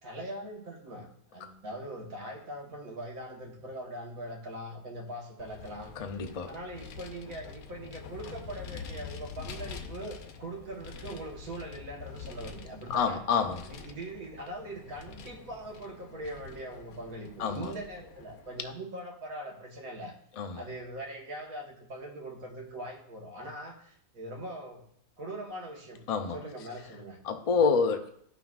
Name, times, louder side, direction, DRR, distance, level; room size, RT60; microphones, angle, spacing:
voice 1, 0.0-5.9 6.4-13.2 13.6-20.1 20.5-24.8 25.2-26.0 26.3-27.2 27.5-27.6, right 1 dB, 70° right, 0 dB, 1.6 m, -41 dB
Vehicle, 5.4-18.6, left 6 dB, 85° left, 1.2 m, -46 dB
voice 2, 6.0-6.5 12.9-13.7 17.4-17.7 20.4-20.6 26.1-26.4 27.2-28.1, left 5 dB, 70° left, 6 dB, 0.3 m, -28 dB
12.5 x 5.8 x 2.3 m, 0.66 s
omnidirectional pair, 1.5 m